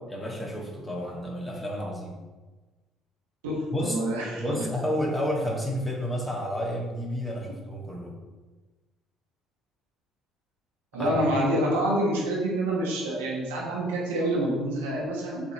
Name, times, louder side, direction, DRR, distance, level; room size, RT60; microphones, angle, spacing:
voice 1, 0.1-2.2 3.7-4.0 4.4-8.2 10.9-11.1, equal, 10° left, -1 dB, 1.8 m, -30 dB
voice 2, 3.4-4.4 10.9-15.5, right 1 dB, 80° right, -4 dB, 1.6 m, -27 dB
7.1 x 3.5 x 4.4 m, 1.2 s
hypercardioid pair, 55°, 0 cm